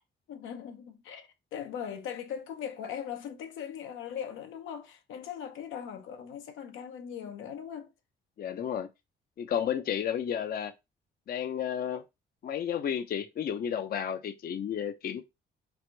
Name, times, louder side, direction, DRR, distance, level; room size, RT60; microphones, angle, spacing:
voice 1, 0.3-7.9, left 8 dB, 85° left, 0.7 m, -40 dB
voice 2, 8.4-8.9 9.4-10.7 11.3-12.0 12.4-15.2, left 9 dB, 50° left, 0.5 m, -32 dB
3.4 x 2.5 x 4.3 m
cardioid pair, 90°, 20 cm